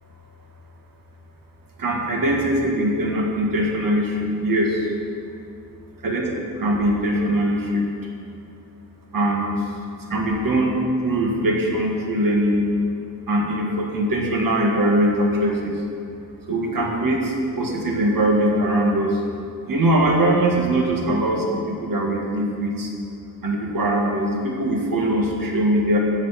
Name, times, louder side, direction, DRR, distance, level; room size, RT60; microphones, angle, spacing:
voice 1, 1.8-4.8 6.0-6.2 6.6-7.8 9.1-9.5 10.1-10.8 11.0-12.6 13.3-15.7 16.5-19.2 19.7-22.9 23.4-26.0, right 1 dB, 70° right, 0 dB, 1.9 m, -21 dB
14.0 x 9.2 x 5.9 m, 2.5 s
wide cardioid pair, 165°, 35 cm